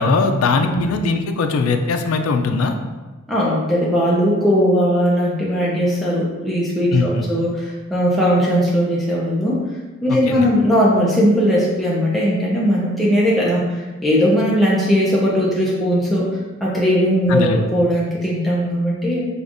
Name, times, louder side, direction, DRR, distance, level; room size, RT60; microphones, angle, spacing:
voice 1, 0.0-2.7 6.9-7.3 10.3-10.5 17.3-17.7, left 3 dB, 80° left, 6 dB, 0.4 m, -20 dB
voice 2, 3.3-9.6 10.0-16.3 16.6-19.3, equal, ahead, -7 dB, 0.5 m, -18 dB
5.0 x 2.3 x 2.5 m, 1.2 s
head